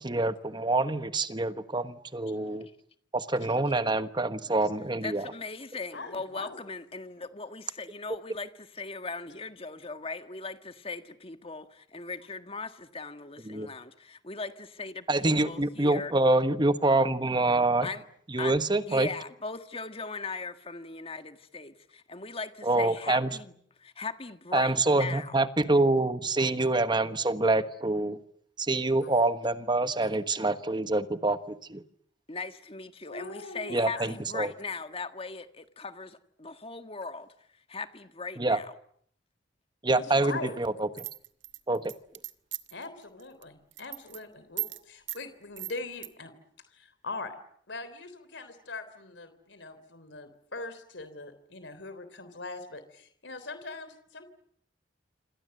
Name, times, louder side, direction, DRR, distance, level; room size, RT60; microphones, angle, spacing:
voice 1, 0.0-2.7 3.1-5.2 13.4-13.7 15.1-17.9 18.3-19.1 22.6-23.4 24.5-28.2 28.6-31.8 33.7-34.5 38.4-38.6 39.8-41.1 41.7-41.9, right 2 dB, 25° right, 1.2 m, -26 dB
voice 2, 5.0-16.1 17.8-18.0 18.4-18.5 18.9-23.5 23.8-25.4 32.3-37.3 37.7-38.7, left 4 dB, 30° left, 1.7 m, -39 dB
voice 3, 5.9-6.6 22.9-23.0 33.1-34.1 39.9-40.5 42.7-46.3 46.7-47.3 47.7-54.3, left 3 dB, 70° left, 3.5 m, -41 dB
sound 1, 41.0-42.8 43.2-43.4 43.7-44.2 44.6-44.8 45.1-45.2 45.6-46.1, right 15 dB, 80° right, 1.5 m, -37 dB
27.5 x 26.5 x 7.9 m
head